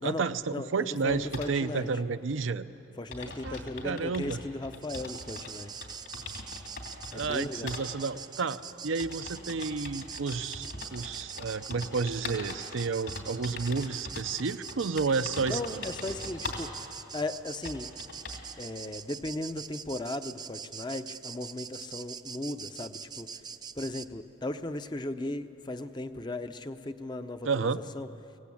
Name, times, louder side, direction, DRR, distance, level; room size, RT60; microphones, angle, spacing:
voice 1, 0.0-2.6 3.4-3.6 3.8-4.4 7.1-15.8 27.4-27.8, right 4 dB, 80° right, 11 dB, 0.6 m, -31 dB
voice 2, 0.5-1.9 3.0-5.7 7.1-7.7 15.5-16.8 17.1-17.9 18.6-23.4 23.7-28.1, left 2 dB, 20° left, 9 dB, 0.6 m, -37 dB
sound 1, 1.1-1.6 2.4-2.5 2.8-2.9 3.1-5.5 5.8-7.4 7.7-7.8 8.6-16.7 17.2-17.3 17.6-18.5, left 3 dB, 65° left, 3.1 m, -42 dB
sound 2, 4.8-24.1, right 7 dB, 20° right, 0.4 m, -43 dB
24.5 x 18.0 x 8.5 m, 3.0 s
head